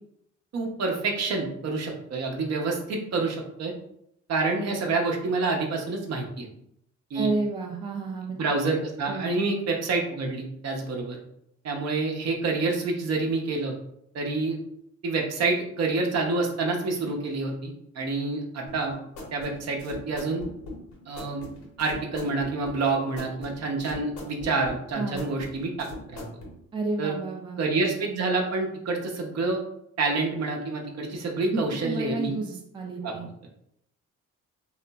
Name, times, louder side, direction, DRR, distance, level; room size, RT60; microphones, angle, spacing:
voice 1, 0.5-3.7 4.3-6.5 7.1-7.3 8.4-11.2 11.6-13.7 14.1-14.6 15.0-19.0 19.3-20.4 21.1-21.5 21.8-26.2 27.0-27.2 27.6-29.6 30.0-32.3 33.0-33.1 33.4-33.5, right 3 dB, 60° right, 0 dB, 0.7 m, -28 dB
voice 2, 7.1-8.4 9.1-9.5 24.9-25.3 26.7-27.6 31.5-33.3, right 3 dB, 15° right, 1 dB, 0.3 m, -31 dB
sound 1, 18.7-26.5, left 2 dB, 85° left, 0.9 m, -41 dB
2.9 x 2.4 x 2.2 m, 0.76 s
cardioid pair, 90°, 30 cm